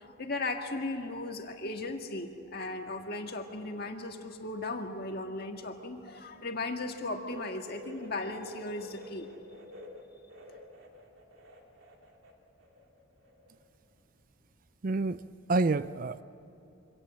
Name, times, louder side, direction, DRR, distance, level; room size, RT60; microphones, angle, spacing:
voice 1, 0.0-9.3 9.6-9.7, left 2 dB, 50° left, 4 dB, 1.8 m, -37 dB
sound 1, 7.3-12.3 12.6-13.6 13.9-14.0 15.0-15.1, left 1 dB, 80° right, 2.8 m, -50 dB
voice 2, 14.8-15.2 15.5-16.2, right 3 dB, 45° right, 15 dB, 0.4 m, -28 dB
24.5 x 17.5 x 7.5 m, 2.9 s
head